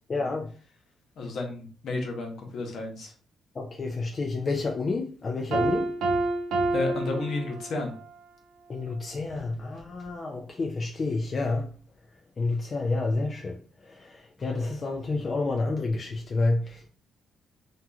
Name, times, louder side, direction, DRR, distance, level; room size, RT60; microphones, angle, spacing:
voice 1, 0.1-0.5 3.6-5.9 8.7-11.7 12.4-13.6 13.9-16.9, left 3 dB, 40° left, 0.4 m, -29 dB
voice 2, 1.2-3.1 6.7-7.9, left 3 dB, 65° left, 0.8 m, -32 dB
Piano, 5.5-8.1, right 2 dB, 80° right, 0.6 m, -28 dB
2.9 x 2.3 x 2.3 m
cardioid pair, 90°, 0 cm